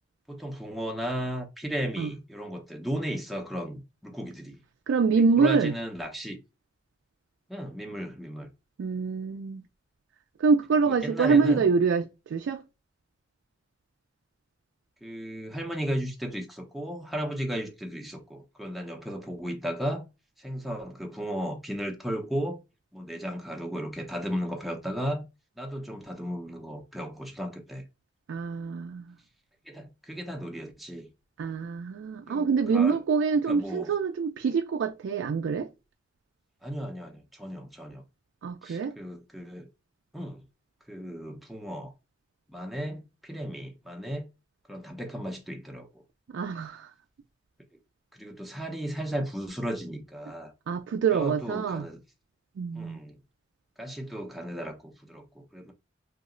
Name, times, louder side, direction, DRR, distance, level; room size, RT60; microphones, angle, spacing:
voice 1, 0.3-4.6 5.1-6.4 7.5-8.5 11.0-11.6 15.0-20.0 20.4-22.6 22.9-25.2 25.6-27.8 29.7-31.1 32.3-33.0 33.5-33.9 36.6-38.0 38.6-39.7 40.1-40.4 40.9-41.9 42.5-44.2 44.7-46.0 48.1-50.5 51.1-52.0 52.7-53.2 53.8-55.7, equal, ahead, 0.6 m, -35 dB
voice 2, 4.9-5.7 8.8-9.6 10.4-12.6 28.3-29.1 31.4-35.7 38.4-39.0 46.3-46.9 50.7-51.9 52.6-53.0, right 5 dB, 85° right, 0.3 m, -25 dB
2.8 x 2.0 x 3.6 m
head